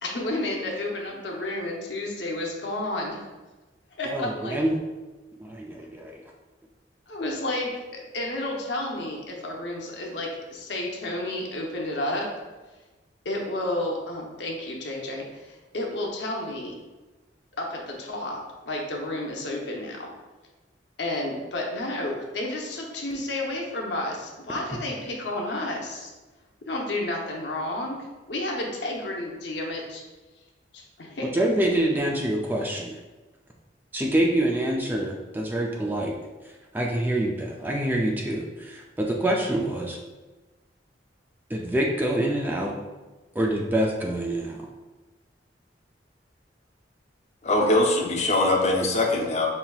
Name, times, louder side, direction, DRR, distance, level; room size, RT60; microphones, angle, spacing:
voice 1, 0.0-3.2 4.0-4.6 7.1-12.3 13.2-16.8 17.6-20.1 21.0-26.1 26.6-30.0 30.7-31.3, left 1 dB, 70° left, -1 dB, 0.7 m, -31 dB
voice 2, 4.1-4.8 5.4-6.2 31.3-33.0 33.9-36.2 36.4-40.0 41.5-42.8 43.4-44.7, right 1 dB, 10° right, -1 dB, 0.3 m, -26 dB
voice 3, 47.4-49.5, left 2 dB, 35° left, 0 dB, 0.6 m, -22 dB
5.5 x 2.7 x 2.3 m, 1.2 s
head